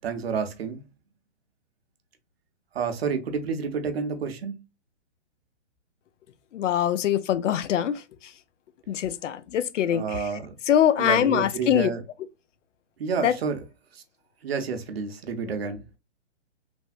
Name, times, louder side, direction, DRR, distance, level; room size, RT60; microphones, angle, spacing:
voice 1, 0.0-0.8 2.7-4.5 9.9-10.5 11.0-12.0 13.0-13.6 13.9-14.0 14.4-15.8, right 5 dB, 60° right, 0.7 m, -29 dB
voice 2, 6.5-8.0 8.9-10.3 10.7-11.9 13.2-13.3 15.4-15.5, left 10 dB, 85° left, 0.5 m, -23 dB
3.3 x 2.1 x 2.5 m
hypercardioid pair, 170°, 36 cm